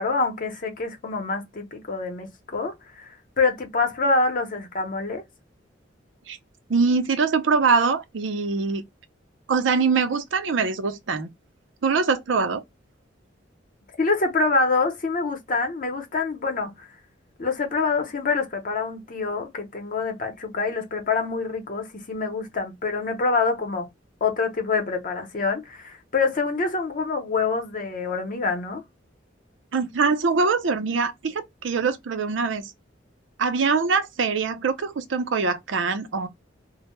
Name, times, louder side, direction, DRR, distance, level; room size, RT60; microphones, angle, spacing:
voice 1, 0.0-3.1 3.4-5.2 14.0-16.9 17.4-23.9 24.2-28.8, left 4 dB, 45° left, 0.7 m, -26 dB
voice 2, 6.7-8.8 9.5-11.3 11.8-12.6 29.7-32.7 33.4-36.3, right 4 dB, 85° right, 0.5 m, -23 dB
2.1 x 2.0 x 2.9 m
head